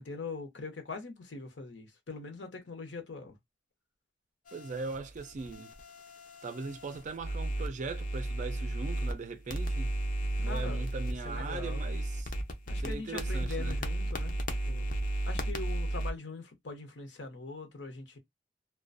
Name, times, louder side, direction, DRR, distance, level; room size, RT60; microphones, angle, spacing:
voice 1, 0.0-3.4 10.4-10.9 11.2-11.8 12.7-14.3 14.7-14.9 15.3-18.2, left 3 dB, 75° left, 0.8 m, -42 dB
sound 1, 4.5-9.1 9.5-16.1, right 1 dB, 45° left, 0.5 m, -34 dB
voice 2, 4.5-5.7 6.4-9.9 10.4-12.3 12.8-13.8, right 4 dB, 40° right, 0.4 m, -40 dB
2.4 x 2.2 x 2.5 m
head